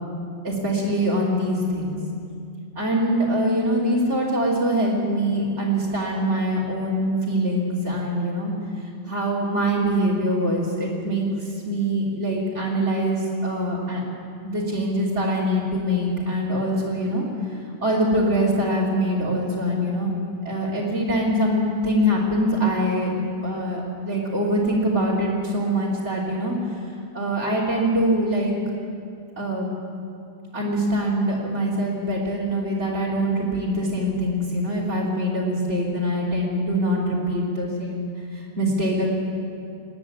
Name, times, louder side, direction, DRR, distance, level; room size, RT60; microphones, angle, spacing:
voice 1, 0.4-2.0 2.8-8.5 8.8-14.0 14.4-20.1 20.5-23.1 23.4-26.6 27.1-28.5 29.4-29.7 30.5-38.1 38.3-39.1, equal, 75° right, -8 dB, 3.6 m, -24 dB
28.0 x 9.8 x 9.7 m, 2.5 s
omnidirectional pair, 1.2 m